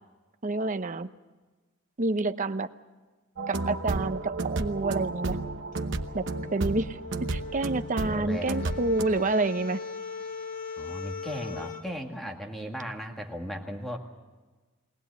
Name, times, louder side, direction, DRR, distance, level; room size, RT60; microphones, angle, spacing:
voice 1, 0.4-1.1 2.0-2.7 3.5-5.4 6.1-6.3 6.5-7.0 7.3-9.8, right 2 dB, 40° right, 10 dB, 0.8 m, -28 dB
sound 1, 3.4-9.0, right 3 dB, 60° right, 1.0 m, -32 dB
sound 2, 5.7-11.9, left 5 dB, 40° left, 2.0 m, -39 dB
voice 2, 8.0-8.6 10.8-14.0, equal, ahead, 1 dB, 2.0 m, -36 dB
22.0 x 18.0 x 8.2 m, 1.3 s
head